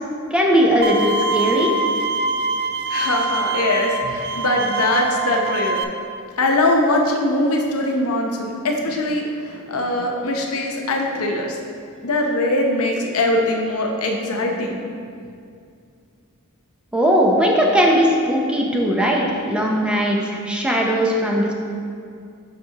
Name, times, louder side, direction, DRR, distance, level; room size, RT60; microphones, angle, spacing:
voice 1, 0.3-1.7 16.9-21.5, equal, 5° right, -1 dB, 0.6 m, -18 dB
Bowed string instrument, 0.8-5.8, right 3 dB, 50° right, 0.4 m, -24 dB
voice 2, 2.9-5.8 6.4-11.6 12.0-14.9, left 1 dB, 70° left, 1 dB, 0.7 m, -21 dB
7.0 x 5.9 x 2.8 m, 2.4 s
head